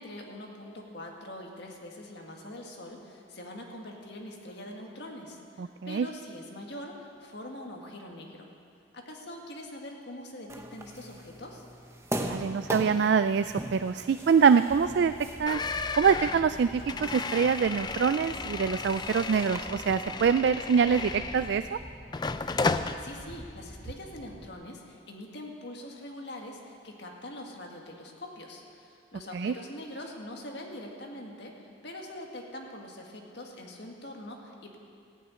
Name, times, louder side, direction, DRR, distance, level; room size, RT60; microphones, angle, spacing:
voice 1, 0.0-8.5 8.9-11.6 22.7-34.8, left 1 dB, 55° left, 1 dB, 1.9 m, -43 dB
voice 2, 5.6-6.1 12.3-15.1 15.4-15.6 16.0-21.8 29.3-29.5, right 6 dB, 55° right, 12 dB, 0.3 m, -25 dB
sound 1, 10.5-19.6, right 1 dB, 15° right, 0.8 m, -40 dB
sound 2, 14.7-24.5, equal, 5° left, 1.2 m, -47 dB
sound 3, 15.5-21.7 22.1-23.0, left 4 dB, 20° left, 0.4 m, -33 dB
14.5 x 9.3 x 9.6 m, 2.4 s
head